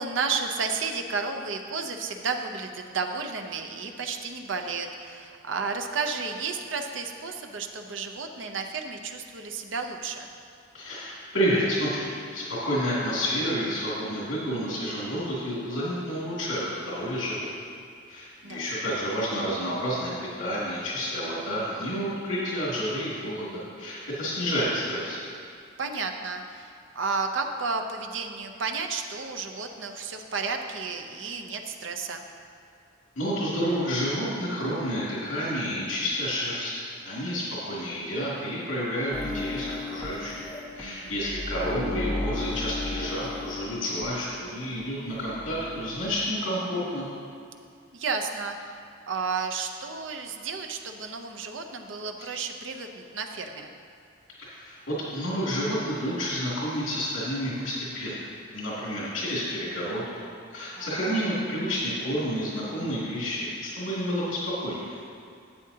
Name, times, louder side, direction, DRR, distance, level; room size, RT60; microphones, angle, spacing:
voice 1, 0.0-10.3 18.4-18.7 25.8-32.2 40.8-41.2 47.9-48.8 49.1-53.7 60.8-61.2, right 4 dB, 75° right, 5 dB, 0.7 m, -32 dB
voice 2, 10.7-17.5 18.1-20.1 20.4-25.2 33.2-36.8 37.1-40.5 40.7-47.1 52.2-52.3 54.4-58.2 58.5-64.9, equal, 80° left, -8 dB, 2.5 m, -30 dB
sound 1, 39.1-44.8 45.1-46.3, left 2 dB, 10° left, 0.7 m, -35 dB
12.0 x 8.5 x 2.8 m, 2.3 s
head